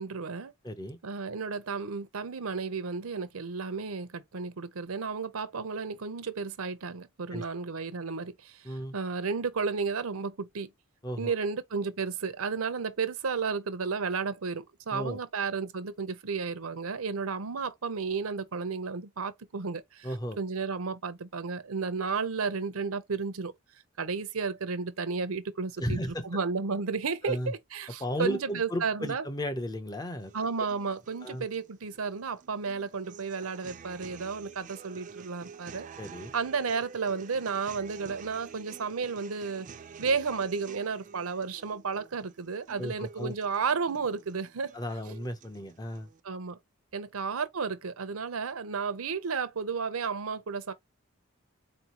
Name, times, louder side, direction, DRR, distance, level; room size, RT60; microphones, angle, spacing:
voice 1, 0.0-0.5 1.0-10.7 11.2-20.1 20.4-23.5 24.0-29.2 30.3-35.9 36.3-39.7 40.0-44.7 46.2-46.6 46.9-50.7, right 5 dB, 85° right, 0.7 m, -33 dB
voice 2, 0.6-1.0 7.3-7.4 8.6-8.9 11.0-11.4 14.9-15.2 20.0-20.4 25.8-26.3 27.3-27.5 28.0-30.3 31.2-31.4 36.0-36.3 42.8-43.3 44.7-46.1, equal, 20° left, 0.5 m, -34 dB
sound 1, 30.2-46.2, right 6 dB, 35° right, 0.4 m, -50 dB
4.3 x 2.7 x 2.9 m
head